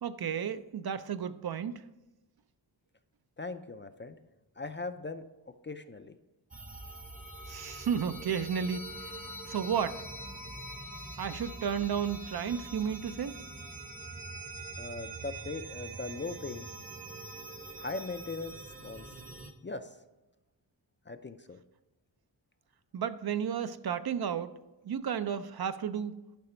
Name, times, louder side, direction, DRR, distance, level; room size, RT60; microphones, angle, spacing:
voice 1, 0.0-1.8 7.5-9.1 9.5-10.0 11.2-13.4 22.9-24.5 24.8-26.1, right 7 dB, 60° right, 0.5 m, -33 dB
voice 2, 3.4-4.2 4.6-5.2 5.6-6.1 14.8-16.7 17.8-19.1 19.6-19.9 21.1-21.6, left 3 dB, 25° left, 0.4 m, -39 dB
sound 1, 6.5-19.5, right 2 dB, 20° right, 0.7 m, -44 dB
10.5 x 5.9 x 4.3 m
wide cardioid pair, 100°, 44 cm